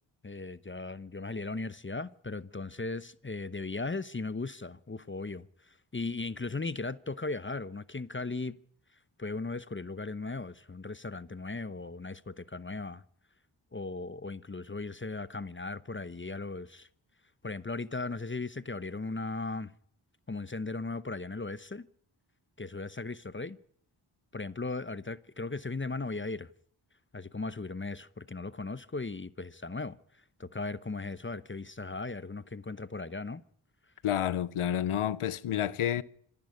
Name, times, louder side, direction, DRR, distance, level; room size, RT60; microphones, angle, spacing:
voice 1, 0.2-8.5 9.2-13.0 13.7-16.9 17.4-19.7 20.3-21.9 22.6-23.6 24.3-26.5 27.1-30.0 30.4-33.4, left 3 dB, 25° left, 0.9 m, -37 dB
voice 2, 34.0-36.0, left 10 dB, 85° left, 0.8 m, -29 dB
26.0 x 11.0 x 9.8 m
cardioid pair, 45°, 49 cm